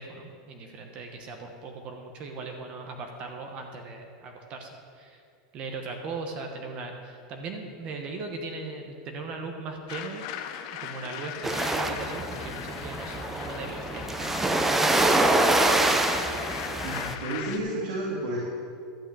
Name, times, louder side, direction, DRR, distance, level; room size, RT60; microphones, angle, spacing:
voice 1, 0.0-5.2 5.5-10.3 10.8-14.5, right 3 dB, 30° right, 3 dB, 1.1 m, -38 dB
sound 1, 9.9-17.6, left 9 dB, 50° left, 0.8 m, -39 dB
sound 2, 11.4-17.1, right 2 dB, 5° right, 0.5 m, -25 dB
voice 2, 16.8-18.4, right 1 dB, 75° right, -4 dB, 2.3 m, -31 dB
12.0 x 5.6 x 8.4 m, 2.4 s
supercardioid pair, 165°, 4 cm